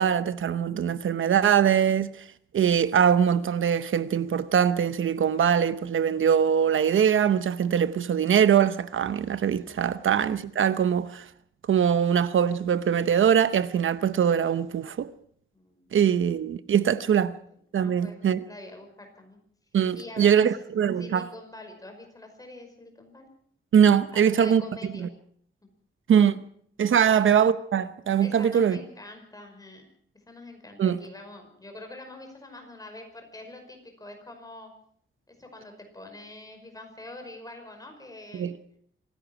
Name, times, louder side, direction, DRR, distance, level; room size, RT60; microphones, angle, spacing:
voice 1, 0.0-2.3 2.5-11.3 11.7-15.1 15.9-17.3 17.7-18.4 19.7-21.3 23.7-24.6 25.0-25.1 26.1-26.4 26.8-28.8 30.8-31.0 38.3-38.5, right 8 dB, 70° right, 0.9 m, -22 dB
voice 2, 15.5-16.0 17.7-19.4 19.9-20.5 21.0-23.3 24.1-25.1 26.9-27.1 28.2-29.8 30.3-34.7 35.3-38.6, left 2 dB, 15° left, 5.4 m, -45 dB
26.0 x 16.5 x 6.1 m
wide cardioid pair, 150°, 21 cm